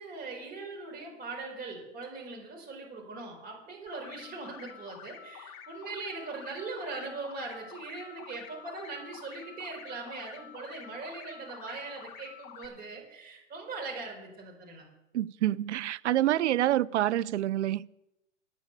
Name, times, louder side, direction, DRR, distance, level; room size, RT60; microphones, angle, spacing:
voice 1, 0.0-14.9, right 3 dB, 25° right, 4.4 m, -41 dB
sound 1, 3.9-12.7, left 8 dB, 35° left, 1.3 m, -48 dB
voice 2, 15.1-17.8, right 13 dB, 65° right, 0.5 m, -27 dB
9.4 x 8.3 x 8.0 m
hypercardioid pair, 120°, 38 cm